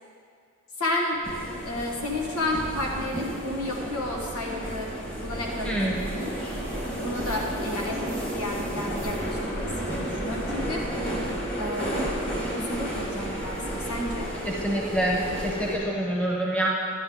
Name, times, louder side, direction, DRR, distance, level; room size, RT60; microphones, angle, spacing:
voice 1, 0.8-1.2 1.6-4.9 5.2-6.3 7.0-10.8 11.6-12.1 12.5-14.3, left 1 dB, 85° left, -1 dB, 1.3 m, -32 dB
sound 1, 1.2-15.8, right 1 dB, 25° left, 1.7 m, -32 dB
voice 2, 5.6-6.0 14.4-16.7, right 1 dB, 5° left, -3 dB, 1.1 m, -26 dB
12.5 x 9.9 x 3.8 m, 2.1 s
head